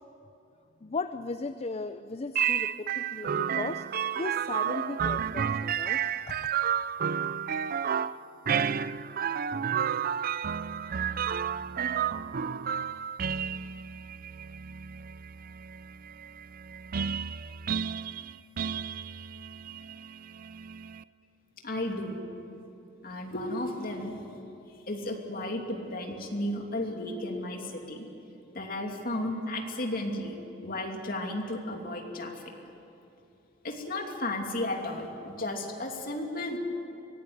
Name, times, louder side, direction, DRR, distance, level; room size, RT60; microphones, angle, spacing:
voice 1, 0.8-3.8 4.2-6.5, left 3 dB, 35° left, 10 dB, 0.5 m, -37 dB
sound 1, 2.4-21.0, right 8 dB, 50° right, 0.5 m, -31 dB
voice 2, 21.6-22.2 23.0-24.4 24.9-28.0 28.5-32.4 33.6-36.6, left 1 dB, 50° left, 2 dB, 2.8 m, -34 dB
24.0 x 17.5 x 9.6 m, 2.8 s
head